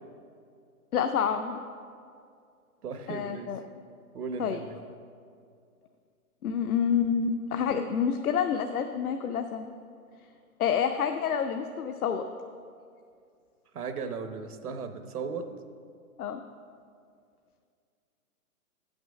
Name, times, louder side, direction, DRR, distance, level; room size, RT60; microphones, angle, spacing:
voice 1, 0.9-1.6 3.1-3.6 4.4-4.6 6.4-9.7 10.6-12.3 16.2-16.4, left 7 dB, 70° left, 6 dB, 0.6 m, -28 dB
voice 2, 2.8-3.5 4.1-4.8 13.7-15.5, right 5 dB, 80° right, 8 dB, 1.0 m, -36 dB
8.4 x 6.1 x 6.3 m, 2.3 s
hypercardioid pair, 160°, 45 cm